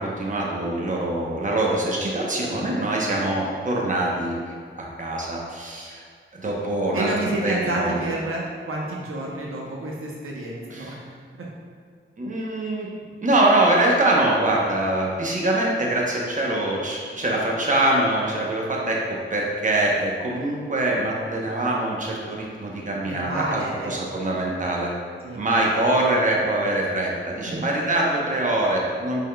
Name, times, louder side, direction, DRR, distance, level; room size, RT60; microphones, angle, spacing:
voice 1, 0.0-4.4 4.7-6.0 6.3-7.1 7.4-8.0 10.7-10.9 12.2-12.9 13.2-19.0 19.3-24.9 25.4-29.2, right 1 dB, 40° right, -2 dB, 0.8 m, -23 dB
voice 2, 6.9-8.4 8.7-11.1 23.1-23.9 25.2-25.4 27.5-27.7, right 2 dB, 80° right, -3 dB, 0.7 m, -29 dB
5.4 x 3.5 x 2.2 m, 2.1 s
cardioid pair, 60°, 21 cm